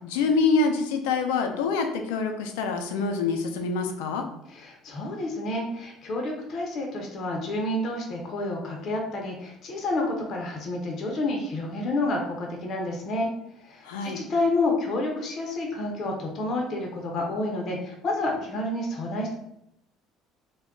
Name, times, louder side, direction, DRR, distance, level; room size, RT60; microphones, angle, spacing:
voice 1, 0.0-4.2 13.8-14.2, left 4 dB, 90° left, 5 dB, 0.4 m, -26 dB
voice 2, 4.5-13.3 13.6-19.3, left 2 dB, 50° left, 0 dB, 0.6 m, -29 dB
2.2 x 2.1 x 3.5 m, 0.78 s
supercardioid pair, 90°, 0 cm